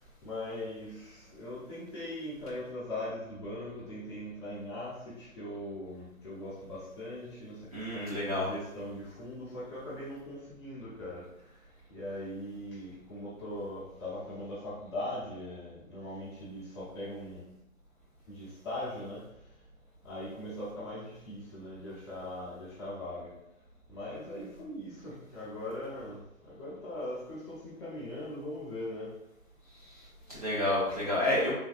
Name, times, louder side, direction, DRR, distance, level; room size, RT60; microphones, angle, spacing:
voice 1, 0.2-7.6 7.9-11.3 11.9-17.4 18.3-19.2 20.0-23.3 23.9-29.1, left 1 dB, 20° left, -9 dB, 0.7 m, -40 dB
voice 2, 7.7-8.5 29.7-31.5, left 1 dB, 30° right, -8 dB, 0.5 m, -30 dB
3.4 x 2.2 x 2.5 m, 0.86 s
figure-of-eight pair, 140°, 42 cm